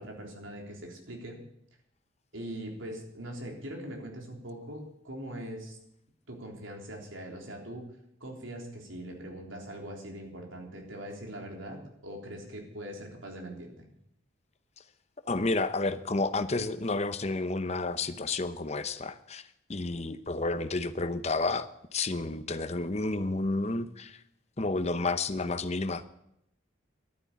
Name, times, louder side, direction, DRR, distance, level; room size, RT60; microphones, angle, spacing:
voice 1, 0.0-1.4 2.3-5.8 6.3-7.9 8.2-13.9, right 1 dB, 75° right, 1 dB, 3.5 m, -41 dB
voice 2, 15.3-19.4 19.7-24.2 24.6-26.0, left 3 dB, 35° left, 11 dB, 0.8 m, -31 dB
12.0 x 9.6 x 8.3 m, 0.79 s
head